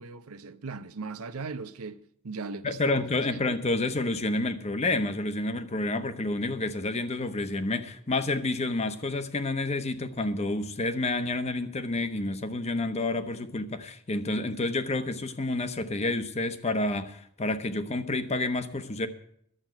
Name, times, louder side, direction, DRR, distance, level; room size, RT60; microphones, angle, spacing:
voice 1, 0.0-3.4, right 4 dB, 85° right, 0.7 m, -39 dB
voice 2, 2.6-19.1, left 2 dB, 30° left, 0.8 m, -29 dB
11.5 x 7.3 x 8.9 m
head